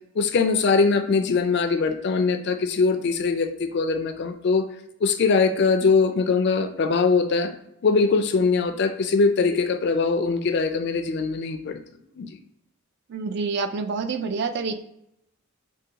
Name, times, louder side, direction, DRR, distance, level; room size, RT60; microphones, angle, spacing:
voice 1, 0.2-4.7 5.0-7.5 7.8-11.8 12.2-12.4, left 4 dB, 50° left, 8 dB, 0.3 m, -22 dB
voice 2, 13.1-14.7, right 4 dB, 50° right, 8 dB, 0.3 m, -27 dB
4.6 x 2.2 x 2.8 m, 0.78 s
head